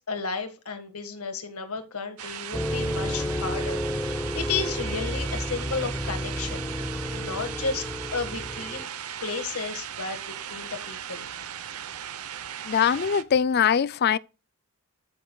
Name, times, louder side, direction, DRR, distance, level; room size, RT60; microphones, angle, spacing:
voice 1, 0.0-6.7 7.1-7.8 8.1-8.9 9.2-11.3, left 5 dB, 80° left, 1.7 m, -33 dB
sound 1, 2.2-13.2, right 9 dB, 80° right, 0.8 m, -37 dB
Tornado siren in Streamwood IL, 2.5-8.8, equal, 5° left, 0.6 m, -31 dB
voice 2, 12.6-14.2, left 7 dB, 45° left, 0.4 m, -22 dB
13.5 x 6.7 x 2.3 m
head